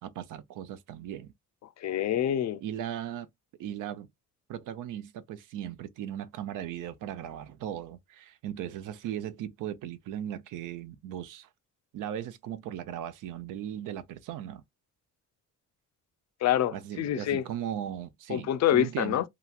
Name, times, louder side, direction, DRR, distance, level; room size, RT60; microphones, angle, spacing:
voice 1, 0.0-1.3 2.6-3.3 3.6-4.1 4.5-11.5 11.9-14.6 16.7-19.2, right 10 dB, 85° right, 0.5 m, -37 dB
voice 2, 1.8-2.6 16.4-17.4 18.3-19.2, left 11 dB, 60° left, 0.5 m, -26 dB
2.9 x 2.3 x 2.3 m
cardioid pair, 85°, 31 cm